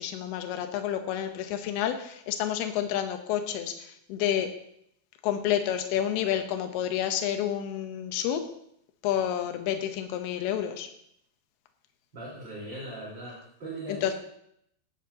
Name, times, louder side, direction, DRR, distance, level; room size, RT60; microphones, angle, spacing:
voice 1, 0.0-4.5 5.2-8.5 9.0-10.9 13.9-14.1, left 10 dB, 85° left, 7 dB, 2.2 m, -29 dB
voice 2, 12.1-14.1, right 1 dB, 25° right, -8 dB, 4.1 m, -39 dB
17.5 x 13.0 x 2.8 m, 0.71 s
omnidirectional pair, 5.9 m